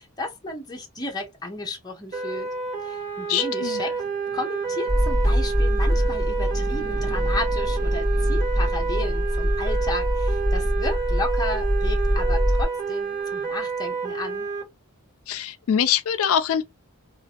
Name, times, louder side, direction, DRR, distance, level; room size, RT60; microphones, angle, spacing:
voice 1, 0.0-2.5 2.8-3.9 4.3-14.5, left 2 dB, 20° left, 0.8 m, -33 dB
sound 1, 2.1-14.6, right 5 dB, 40° right, 1.0 m, -29 dB
voice 2, 3.3-3.8 15.3-16.6, left 9 dB, 85° left, 0.4 m, -23 dB
sound 2, 3.5-13.9, right 2 dB, 55° right, 0.7 m, -47 dB
sound 3, 4.9-12.6, equal, 10° right, 1.6 m, -23 dB
2.9 x 2.5 x 2.8 m
head